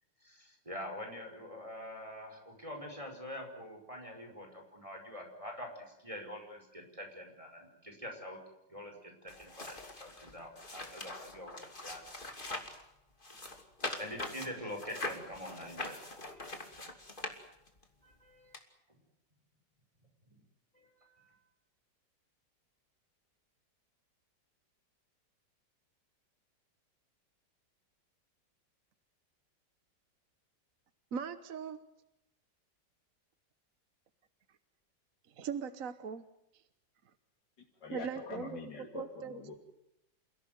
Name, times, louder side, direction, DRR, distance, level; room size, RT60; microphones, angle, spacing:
voice 1, 0.2-8.4 8.7-12.0 14.0-16.0 16.3-16.5 18.0-18.6 20.7-21.3, equal, 20° right, 2 dB, 5.3 m, -45 dB
sound 1, 9.3-12.8 13.2-17.8 18.5-18.6, left 2 dB, 30° left, 2.9 m, -43 dB
voice 2, 31.1-31.8 35.4-36.3 37.9-38.6 38.9-39.4, right 6 dB, 55° right, 11 dB, 1.4 m, -39 dB
voice 3, 37.8-39.6, left 4 dB, 80° left, -1 dB, 3.3 m, -44 dB
29.0 x 16.5 x 9.4 m, 0.87 s
omnidirectional pair, 1.9 m